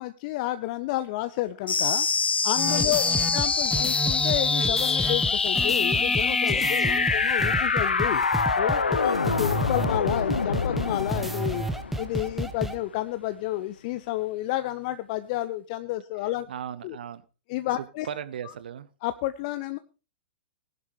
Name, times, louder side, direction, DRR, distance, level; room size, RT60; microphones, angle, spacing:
voice 1, 0.0-2.1 2.4-3.0 3.3-8.2 8.6-11.6 12.0-16.5 16.8-17.0 17.5-18.1 19.0-19.8, left 16 dB, 40° left, 12 dB, 0.7 m, -30 dB
sound 1, 1.7-12.7, left 5 dB, 75° left, 0.8 m, -25 dB
sound 2, 2.6-12.8, right 1 dB, 5° right, 1.1 m, -31 dB
voice 2, 2.6-3.3 6.5-7.1 8.9-9.3 16.2-17.2 17.8-18.9, right 9 dB, 60° right, 15 dB, 1.1 m, -38 dB
19.5 x 11.0 x 3.2 m, 0.32 s
figure-of-eight pair, 105°, 6 cm